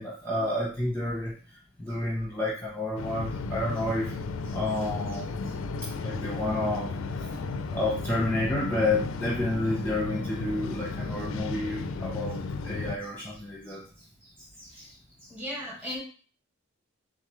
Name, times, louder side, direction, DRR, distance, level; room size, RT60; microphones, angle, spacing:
voice 1, 0.0-1.3 1.8-4.1 4.5-5.3 5.8-13.8 14.6-14.9 15.8-15.9, left 2 dB, 10° left, -6 dB, 0.9 m, -30 dB
sound 1, 3.0-13.0, left 3 dB, 75° left, 0.4 m, -34 dB
voice 2, 15.3-16.0, left 1 dB, 10° right, -2 dB, 1.2 m, -35 dB
3.8 x 3.6 x 3.2 m, 0.41 s
head